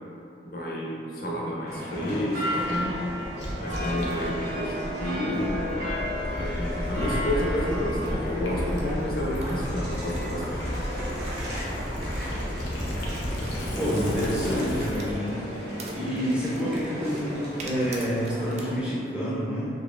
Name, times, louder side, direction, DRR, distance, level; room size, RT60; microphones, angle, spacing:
voice 1, 0.4-3.0 3.6-5.7 6.4-10.8, left 1 dB, 50° left, -5 dB, 0.7 m, -30 dB
sound 1, 1.7-18.8, equal, 65° right, 0.9 m, -34 dB
Gurgling / Liquid, 2.6-15.2, equal, 90° left, 0.7 m, -33 dB
sound 2, 8.7-18.6, right 2 dB, 35° right, 0.3 m, -46 dB
voice 2, 13.8-19.7, equal, 5° right, -9 dB, 0.7 m, -28 dB
4.0 x 3.0 x 2.4 m, 2.7 s
head